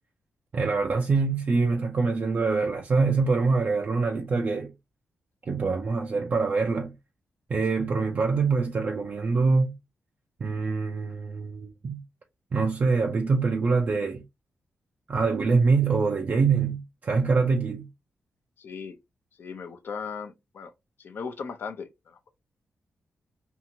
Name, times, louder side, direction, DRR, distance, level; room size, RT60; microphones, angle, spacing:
voice 1, 0.5-4.7 5.5-6.9 7.5-9.7 10.4-12.0 12.5-14.2 15.1-17.9, right 4 dB, 50° right, 0.5 m, -24 dB
voice 2, 18.6-19.0 19.4-20.7 21.0-22.3, left 5 dB, 65° left, 0.6 m, -37 dB
2.8 x 2.4 x 2.8 m
cardioid pair, 80°, 4 cm